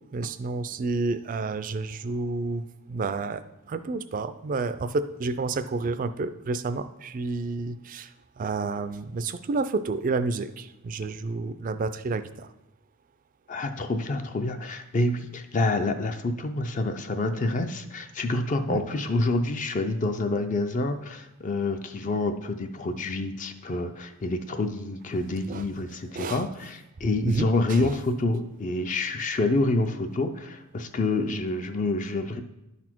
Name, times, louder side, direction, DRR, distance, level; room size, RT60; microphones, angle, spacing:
voice 1, 0.1-8.1 8.4-12.5 18.7-18.8 25.5-25.7 26.1-26.4 27.2-27.9, right 3 dB, 35° right, 11 dB, 0.3 m, -30 dB
voice 2, 13.5-32.4, left 2 dB, 35° left, 7 dB, 0.4 m, -27 dB
11.0 x 4.1 x 4.5 m, 0.93 s
head